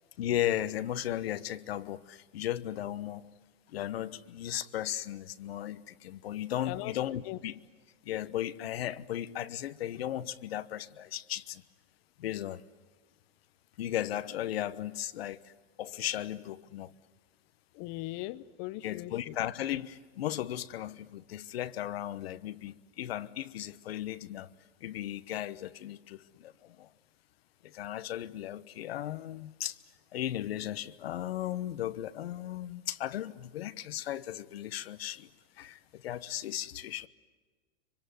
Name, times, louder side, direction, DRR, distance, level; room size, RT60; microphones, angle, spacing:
voice 1, 0.2-3.3 3.7-7.6 8.0-11.6 12.2-12.6 13.8-15.4 15.8-16.9 18.8-24.5 24.8-26.9 27.6-29.8 30.1-35.3 35.6-37.1, left 12 dB, 90° left, 1.2 m, -36 dB
voice 2, 6.6-7.0 7.3-7.4 17.7-19.3, left 19 dB, 45° left, 0.8 m, -39 dB
25.0 x 24.5 x 9.4 m
supercardioid pair, 140°, 29 cm